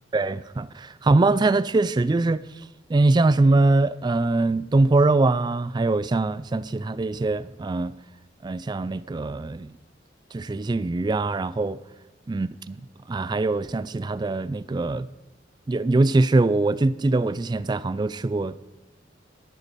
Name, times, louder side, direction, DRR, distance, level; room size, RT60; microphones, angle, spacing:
voice 1, 0.1-2.4 2.9-7.9 8.4-9.7 10.3-11.8 12.3-12.8 13.1-15.1 15.7-18.6, right 2 dB, 25° right, 0.3 m, -22 dB
11.0 x 9.3 x 6.7 m
head